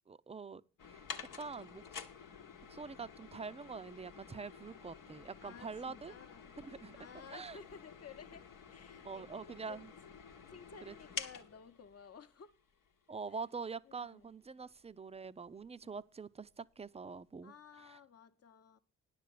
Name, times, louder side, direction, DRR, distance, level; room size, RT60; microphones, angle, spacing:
voice 1, 0.1-1.0 1.4-1.9 2.7-6.1 6.6-7.0 7.3-7.6 9.0-9.9 10.9-11.0 13.1-18.0, right 5 dB, 20° right, 0.5 m, -45 dB
sound 1, 0.8-12.9 13.3-13.4 14.2-14.3 14.6-14.7 15.2-15.3 15.6-15.8, left 6 dB, 70° left, 1.0 m, -50 dB
voice 2, 5.4-6.6 6.9-8.4 8.7-9.8 10.5-12.5 13.3-13.4 13.9-14.3 15.7-16.0 17.4-18.8, left 6 dB, 45° left, 0.9 m, -55 dB
10.0 x 6.6 x 6.7 m
hypercardioid pair, 45°, 34 cm